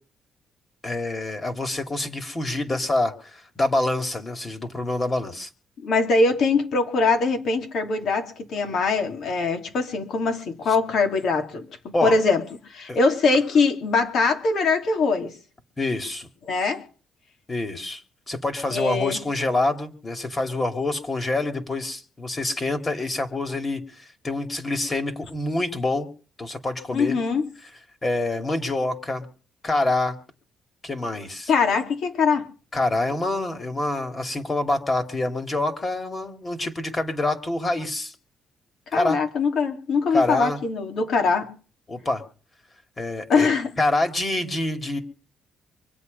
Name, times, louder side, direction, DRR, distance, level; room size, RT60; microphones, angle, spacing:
voice 1, 0.8-5.5 11.9-12.2 12.9-13.0 15.8-16.3 17.5-18.0 18.3-26.1 26.4-27.2 28.0-29.3 29.6-30.1 30.8-31.5 32.7-38.1 38.9-39.2 40.1-40.6 41.9-42.2 43.0-43.5 43.8-45.0, left 2 dB, 25° left, 2.6 m, -26 dB
voice 2, 5.8-11.7 12.0-12.4 12.7-15.3 16.5-16.8 18.7-19.2 26.9-27.5 31.5-32.5 38.9-41.5 43.3-43.7, left 4 dB, 65° left, 2.8 m, -22 dB
24.5 x 8.3 x 5.4 m
cardioid pair, 90°, 0 cm